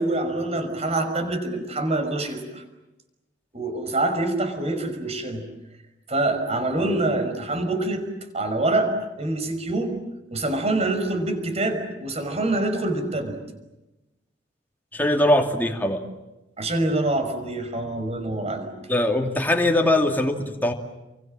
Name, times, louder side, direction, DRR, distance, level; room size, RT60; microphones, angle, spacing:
voice 1, 0.0-2.6 3.5-5.4 6.1-8.1 8.3-9.9 10.3-13.4 16.6-18.7, right 2 dB, 35° right, 7 dB, 5.5 m, -25 dB
voice 2, 14.9-16.0 18.9-20.7, left 1 dB, 10° left, 3 dB, 2.6 m, -21 dB
30.0 x 24.5 x 7.6 m, 1.0 s
head